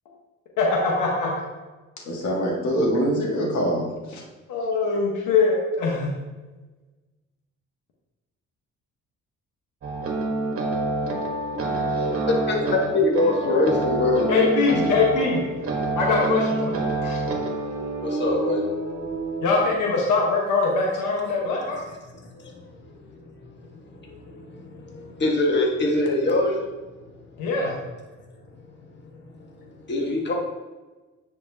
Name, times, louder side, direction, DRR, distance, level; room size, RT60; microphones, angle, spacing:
voice 1, 0.6-1.4 4.5-6.1 14.3-15.4 15.9-16.7 17.0-17.2 19.4-21.8 27.4-27.7, left 4 dB, 90° left, -2 dB, 1.3 m, -22 dB
voice 2, 2.0-4.2, equal, 70° left, -2 dB, 1.8 m, -24 dB
sound 1, 9.8-19.6, right 2 dB, 50° right, 1.3 m, -27 dB
voice 3, 12.5-14.5 14.8-14.9 18.0-18.6 22.2-22.9 23.8-26.6 29.6-30.3, left 2 dB, 35° left, -1 dB, 1.5 m, -24 dB
9.6 x 4.4 x 2.8 m, 1.2 s
cardioid pair, 90°, 30 cm